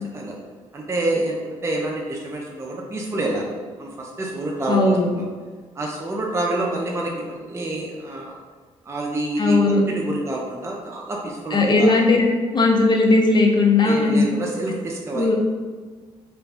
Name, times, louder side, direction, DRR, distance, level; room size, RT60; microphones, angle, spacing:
voice 1, 0.7-3.5 3.8-5.3 5.7-8.4 8.9-12.0 13.8-15.3, right 2 dB, 20° right, -1 dB, 0.4 m, -27 dB
voice 2, 4.7-5.1 9.4-9.8 11.5-12.2 12.5-14.3 15.1-15.3, left 3 dB, 30° left, 0 dB, 0.6 m, -17 dB
2.5 x 2.2 x 3.4 m, 1.5 s
supercardioid pair, 60°, 14 cm